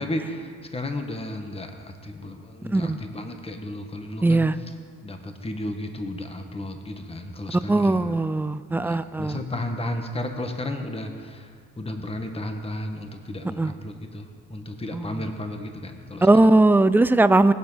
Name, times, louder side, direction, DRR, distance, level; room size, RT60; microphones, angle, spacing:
voice 1, 0.0-4.5 5.0-8.0 8.7-16.3, left 1 dB, 20° left, 5 dB, 1.4 m, -33 dB
voice 2, 4.2-4.6 7.7-9.4 13.6-13.7 14.9-15.2 16.2-17.5, right 2 dB, 5° right, 14 dB, 0.4 m, -19 dB
20.0 x 7.3 x 5.6 m, 2.1 s
cardioid pair, 90°, 30 cm